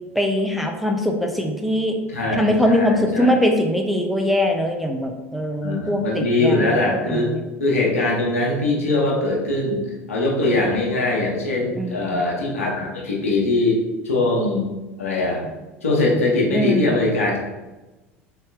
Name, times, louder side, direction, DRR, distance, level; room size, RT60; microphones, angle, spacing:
voice 1, 0.2-2.0 2.3-7.4 11.8-12.2 16.5-16.9, left 1 dB, ahead, 2 dB, 0.6 m, -22 dB
voice 2, 2.1-3.4 5.6-7.3 7.6-13.8 14.0-14.7 15.0-15.4 15.8-17.4, left 2 dB, 80° left, -2 dB, 1.0 m, -21 dB
4.1 x 3.5 x 3.5 m, 1.1 s
figure-of-eight pair, 70°, 7 cm